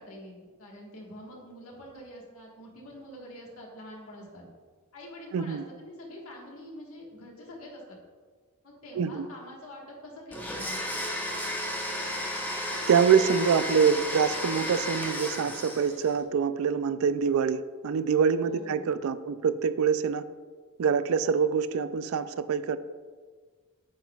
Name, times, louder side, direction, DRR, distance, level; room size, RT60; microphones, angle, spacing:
voice 1, 0.0-4.4 4.9-8.0 8.6-10.8 18.4-18.9, left 1 dB, 75° left, -1 dB, 1.5 m, -45 dB
voice 2, 5.3-5.6 9.0-9.3 12.9-20.2 20.8-22.8, right 6 dB, 70° right, 13 dB, 0.3 m, -25 dB
Domestic sounds home sounds, 10.3-16.2, left 1 dB, 10° left, 0.8 m, -33 dB
8.6 x 5.9 x 2.3 m, 1.5 s
head